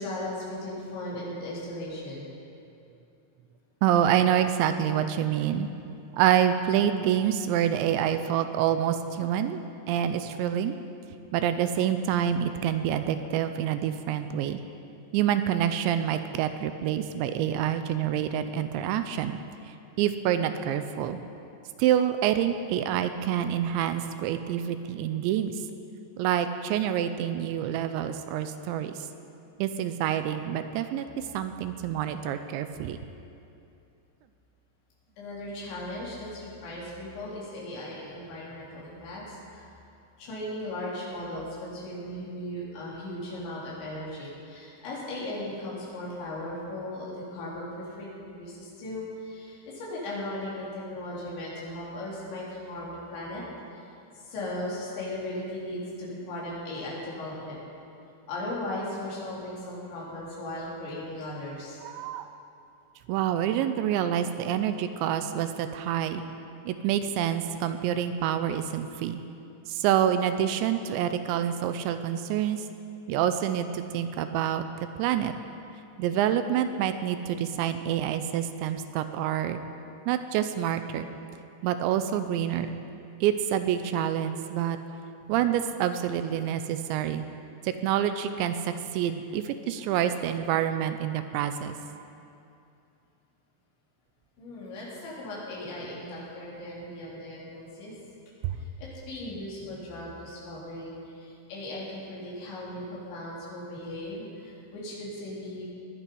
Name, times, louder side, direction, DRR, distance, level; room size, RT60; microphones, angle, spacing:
voice 1, 0.0-2.3 35.2-39.7 40.2-53.4 53.7-53.9 54.2-57.6 58.3-61.8 64.1-64.2 94.4-97.9 98.5-105.6, left 1 dB, 75° left, -6 dB, 5.7 m, -37 dB
voice 2, 3.8-5.7 6.1-9.6 9.9-10.7 11.3-14.6 15.1-19.4 20.0-21.2 21.8-25.5 26.2-29.0 29.6-31.1 31.3-33.0 61.8-62.3 63.1-66.2 66.7-69.2 69.7-72.6 73.1-74.6 75.0-75.3 76.0-79.6 80.1-81.1 81.6-82.8 83.2-84.8 85.3-87.2 87.6-91.8 98.4-98.6, right 10 dB, 85° right, 9 dB, 2.9 m, -27 dB
20.5 x 11.5 x 5.4 m, 2.6 s
omnidirectional pair, 5.3 m